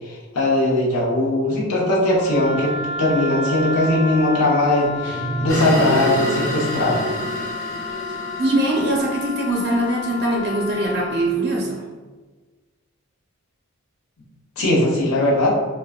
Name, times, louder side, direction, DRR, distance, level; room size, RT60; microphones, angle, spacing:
voice 1, 0.1-7.0 14.6-15.6, left 1 dB, 90° left, -6 dB, 0.8 m, -20 dB
Wind instrument woodwind instrument, 2.1-11.2, left 2 dB, 35° left, 0.8 m, -31 dB
sound 1, 5.0-7.6, right 4 dB, 15° left, 1.1 m, -32 dB
sound 2, 5.5-10.1, equal, 65° left, 1.1 m, -29 dB
voice 2, 8.4-11.8, right 1 dB, 50° right, -1 dB, 0.4 m, -22 dB
3.5 x 2.2 x 2.4 m, 1.3 s
head